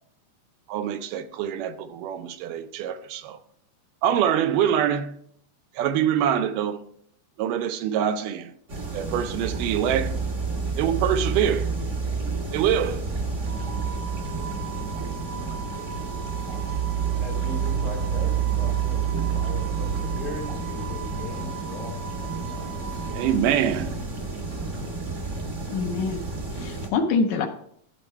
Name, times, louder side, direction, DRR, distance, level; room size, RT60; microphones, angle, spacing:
voice 1, 0.7-3.4 4.0-5.2 5.8-6.8 7.4-8.5 8.9-10.1 10.8-11.7 12.5-13.0 23.1-24.0, right 9 dB, 85° right, 2.2 m, -25 dB
sound 1, 8.7-26.9, right 5 dB, 50° right, 0.8 m, -29 dB
Wind instrument woodwind instrument, 13.5-23.4, right 8 dB, 65° right, 1.7 m, -40 dB
voice 2, 17.1-22.1 22.3-23.0, left 2 dB, 45° left, 1.0 m, -39 dB
voice 3, 25.7-26.2 26.6-27.5, left 4 dB, 75° left, 2.0 m, -25 dB
12.5 x 4.4 x 4.6 m
omnidirectional pair, 3.7 m